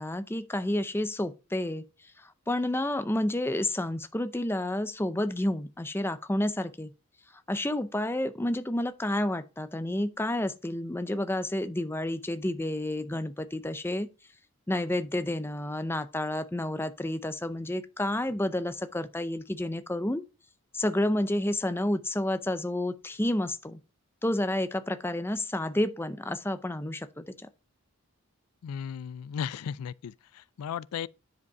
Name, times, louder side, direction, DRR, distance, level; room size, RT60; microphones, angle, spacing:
voice 1, 0.0-1.8 2.2-6.9 7.5-14.1 14.7-20.2 20.7-23.8 24.2-27.2, left 1 dB, 10° left, 0.5 m, -30 dB
voice 2, 28.6-31.1, left 8 dB, 85° left, 0.3 m, -36 dB
9.7 x 5.2 x 4.7 m
head